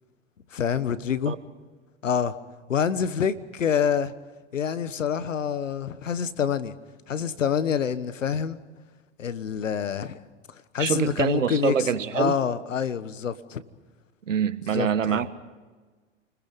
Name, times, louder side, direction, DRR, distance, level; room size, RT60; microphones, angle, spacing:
voice 1, 0.5-1.3 2.0-2.3 2.7-4.1 4.5-6.7 7.1-8.6 9.2-10.2 10.7-11.7 12.1-13.6 14.7-15.2, left 7 dB, 90° left, 1.3 m, -26 dB
voice 2, 10.8-12.3 14.3-15.3, right 8 dB, 90° right, 1.4 m, -25 dB
29.5 x 20.5 x 5.4 m
hypercardioid pair, 105°, 37 cm